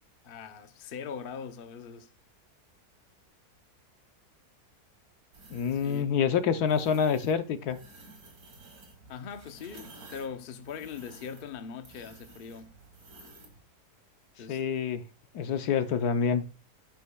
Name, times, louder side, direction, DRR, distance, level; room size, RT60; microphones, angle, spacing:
voice 1, 0.2-2.1 5.7-6.1 9.1-12.7 14.4-14.6, left 6 dB, 50° left, 0.7 m, -41 dB
sound 1, 5.3-6.1 6.6-7.4 7.7-13.6, right 3 dB, 65° right, 2.3 m, -52 dB
voice 2, 5.5-7.8 14.5-15.0 15.3-16.4, left 7 dB, 75° left, 1.3 m, -27 dB
9.8 x 9.8 x 2.3 m
omnidirectional pair, 1.7 m